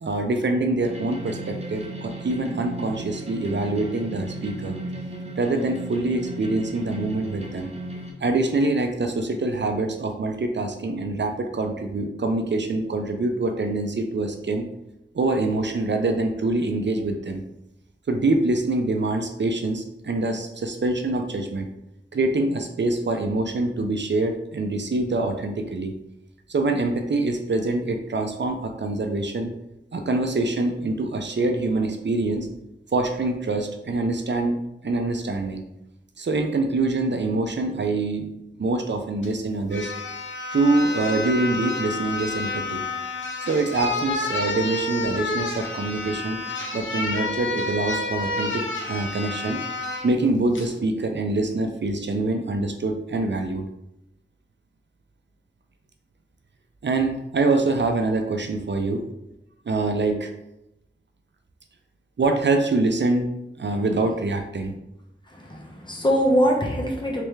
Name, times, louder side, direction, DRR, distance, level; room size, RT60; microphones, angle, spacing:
voice 1, 0.0-4.8 5.4-7.7 8.2-14.6 15.1-17.4 18.1-21.7 22.1-25.9 26.5-29.5 29.9-32.5 32.9-34.6 34.8-35.6 36.2-38.3 38.6-39.9 40.5-42.8 43.4-46.4 46.7-49.6 50.0-53.6 56.8-59.0 59.7-60.3 62.2-63.3 63.6-64.7, right 2 dB, 65° right, 5 dB, 0.5 m, -25 dB
sound 1, 0.8-8.1, right 1 dB, 30° right, 0.9 m, -36 dB
sound 2, 39.2-39.3 39.7-50.1 50.5-50.7, left 2 dB, 70° left, 0.7 m, -29 dB
voice 2, 65.3-67.2, equal, 25° left, -1 dB, 1.0 m, -22 dB
3.3 x 3.3 x 3.1 m, 0.86 s
wide cardioid pair, 40°, 20 cm